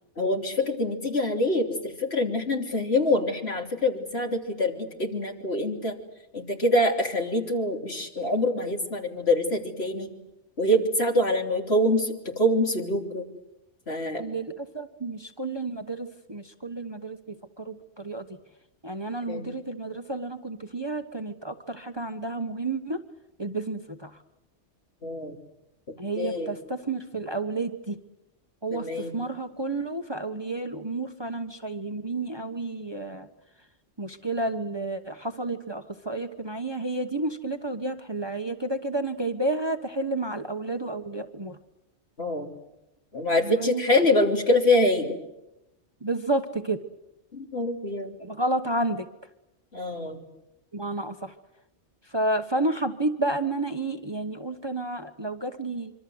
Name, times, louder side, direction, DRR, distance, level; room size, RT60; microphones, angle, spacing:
voice 1, 0.2-6.0 6.3-10.1 10.6-13.3 13.9-14.2 19.3-19.5 25.0-25.4 26.2-26.5 28.7-29.2 42.2-42.5 43.1-45.2 47.3-48.2 49.7-50.2, left 1 dB, 60° left, 3 dB, 3.6 m, -25 dB
voice 2, 14.2-18.2 18.8-23.0 23.4-24.2 26.0-28.0 28.6-28.9 29.1-33.3 34.0-41.6 43.4-43.8 46.0-46.8 48.2-49.1 50.7-51.3 52.1-55.9, right 2 dB, 20° right, 8 dB, 1.2 m, -31 dB
25.5 x 25.0 x 7.9 m, 0.92 s
omnidirectional pair, 1.2 m